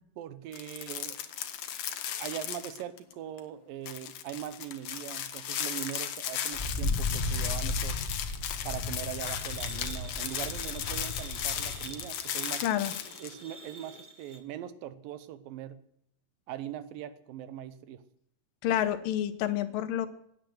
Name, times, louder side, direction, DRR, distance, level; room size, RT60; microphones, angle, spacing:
voice 1, 0.2-1.2 2.2-8.0 8.6-12.7 13.2-15.8 16.5-18.0, right 11 dB, 80° right, 13 dB, 2.6 m, -41 dB
sound 1, 0.5-3.1 3.4-3.5 3.9-13.3, left 10 dB, 65° left, 2.2 m, -36 dB
Wind, 6.5-12.0, left 2 dB, 40° left, 0.8 m, -35 dB
sound 2, 9.2-14.4, right 2 dB, 65° right, 0.4 m, -48 dB
voice 2, 12.6-12.9 18.6-20.1, left 11 dB, 80° left, 11 dB, 2.8 m, -28 dB
16.5 x 10.0 x 7.8 m, 0.73 s
omnidirectional pair, 4.0 m